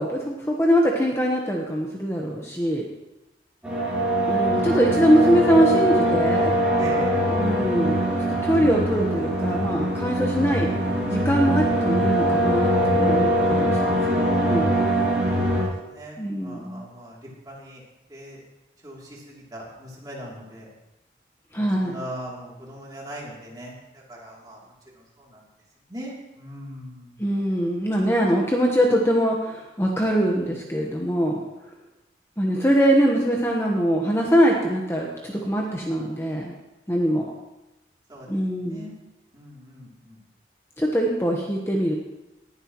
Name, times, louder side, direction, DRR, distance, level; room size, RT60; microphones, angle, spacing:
voice 1, 0.0-2.9 4.3-6.5 7.3-8.1 8.4-10.7 11.1-14.8 16.2-16.8 21.5-22.0 27.2-31.4 32.4-36.6 36.9-37.3 38.3-38.9 40.8-41.9, equal, 15° left, -1 dB, 1.1 m, -22 dB
sound 1, 3.6-15.6, right 1 dB, 5° right, 4.0 m, -22 dB
voice 2, 6.8-7.1 15.9-17.2 17.5-17.8 18.1-18.4 18.8-19.0 19.5-20.7 21.6-23.7 24.1-24.6 25.9-27.1 38.1-38.3 38.7-39.0 39.3-40.2, equal, 20° right, -4 dB, 2.9 m, -39 dB
19.0 x 11.0 x 3.0 m, 0.99 s
head